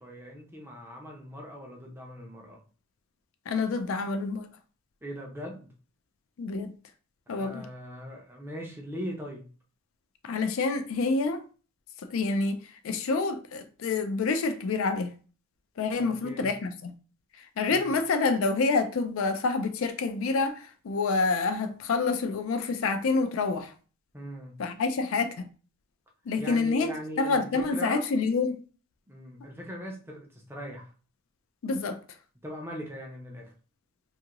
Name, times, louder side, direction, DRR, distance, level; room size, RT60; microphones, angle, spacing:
voice 1, 0.0-2.6 5.0-5.7 7.4-9.4 15.9-16.5 17.7-17.9 24.1-24.6 26.4-28.0 29.1-30.9 32.4-33.5, equal, 10° right, 0.5 m, -40 dB
voice 2, 3.5-4.5 6.4-6.7 7.3-7.7 10.2-11.4 12.1-12.6 12.8-15.1 15.8-16.9 17.4-23.7 24.6-25.3 26.3-26.9 27.2-28.6 31.6-32.0, left 4 dB, 65° left, 0.4 m, -27 dB
2.6 x 2.4 x 2.9 m
head